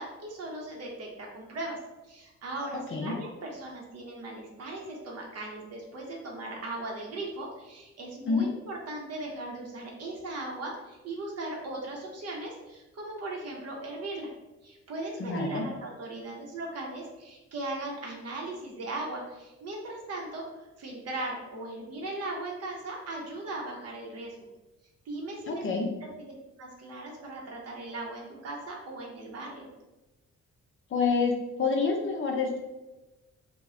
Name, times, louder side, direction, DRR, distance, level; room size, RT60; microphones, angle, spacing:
voice 1, 0.0-14.3 14.6-24.3 25.1-25.7 26.0-26.3 26.6-29.7, right 2 dB, 55° right, -1 dB, 0.7 m, -38 dB
voice 2, 15.2-15.7 25.5-25.9 30.9-31.3 31.6-32.6, left 4 dB, 45° left, 2 dB, 0.6 m, -27 dB
2.1 x 2.1 x 3.5 m, 1.1 s
cardioid pair, 90°, 30 cm